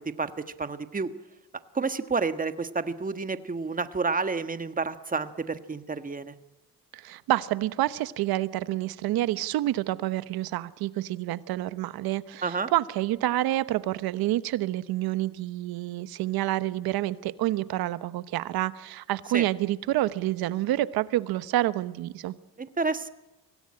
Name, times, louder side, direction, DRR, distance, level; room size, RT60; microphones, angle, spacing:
voice 1, 0.6-1.1 1.7-6.3 12.4-12.7 19.3-19.4 22.6-23.1, right 4 dB, 25° right, 10 dB, 1.5 m, -30 dB
voice 2, 6.9-22.3, right 15 dB, 85° right, 15 dB, 1.1 m, -28 dB
24.5 x 17.5 x 9.9 m, 1.0 s
cardioid pair, 90°, 36 cm